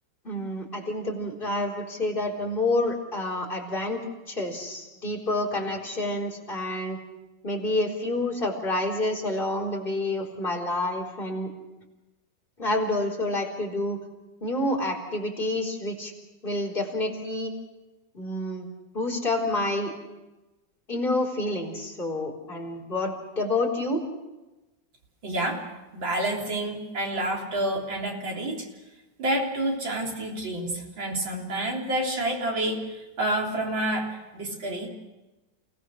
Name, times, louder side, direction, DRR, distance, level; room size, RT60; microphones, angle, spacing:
voice 1, 0.2-4.0 4.3-7.0 7.4-11.5 12.6-14.0 14.4-16.1 16.4-17.5 18.1-18.7 18.9-19.9 20.9-24.0, left 2 dB, 25° left, -1 dB, 4.4 m, -28 dB
voice 2, 25.2-25.7 25.9-28.7 29.2-34.9, right 1 dB, 85° right, 0 dB, 4.4 m, -29 dB
29.5 x 18.0 x 6.5 m, 1.1 s
omnidirectional pair, 2.0 m